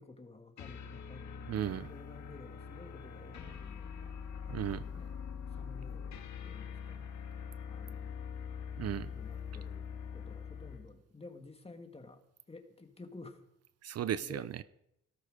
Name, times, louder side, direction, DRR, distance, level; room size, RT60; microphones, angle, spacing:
voice 1, 0.0-4.1 4.5-5.2 5.5-7.1 7.7-8.1 9.1-9.9 10.1-12.2 12.5-13.4 14.2-14.5, left 3 dB, 20° left, 6 dB, 2.2 m, -52 dB
sound 1, 0.6-10.9, left 7 dB, 70° left, 2.1 m, -43 dB
voice 2, 1.5-1.9 4.5-4.8 8.8-9.1 13.8-14.6, right 10 dB, 55° right, 16 dB, 0.7 m, -35 dB
17.5 x 13.0 x 5.1 m, 0.80 s
cardioid pair, 90°, 30 cm